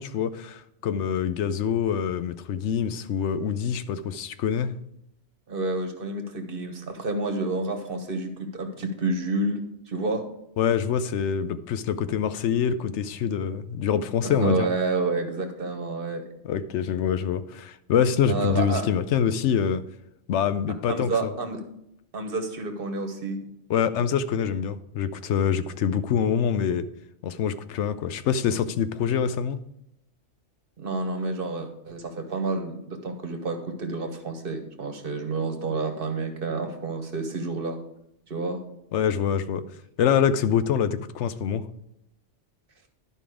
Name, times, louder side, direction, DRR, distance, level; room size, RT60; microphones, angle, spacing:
voice 1, 0.0-4.7 10.6-14.7 16.4-19.8 20.3-21.1 23.7-26.9 27.2-29.6 38.9-39.6 40.0-41.6, left 8 dB, 75° left, 13 dB, 0.9 m, -25 dB
voice 2, 5.5-9.6 9.9-10.3 14.2-16.2 18.3-18.9 20.9-21.6 22.1-23.4 30.8-37.8 38.3-38.6, right 3 dB, 50° right, 5 dB, 1.3 m, -29 dB
11.0 x 5.4 x 4.9 m, 0.80 s
omnidirectional pair, 1.2 m